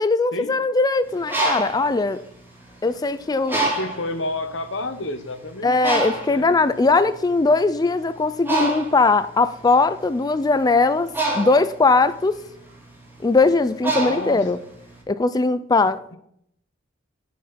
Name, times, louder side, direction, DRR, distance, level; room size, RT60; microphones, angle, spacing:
voice 1, 0.0-2.2 2.8-3.7 5.6-12.4 13.2-14.6 15.1-16.2, left 3 dB, 20° left, 0.4 m, -20 dB
Bird, 1.1-2.9 3.5-4.2 4.8-5.0 5.2-15.0, right 2 dB, 10° right, 2.2 m, -27 dB
voice 2, 3.8-5.7 6.3-6.6 13.9-14.5, left 2 dB, 85° left, 1.2 m, -30 dB
10.0 x 6.2 x 5.8 m
head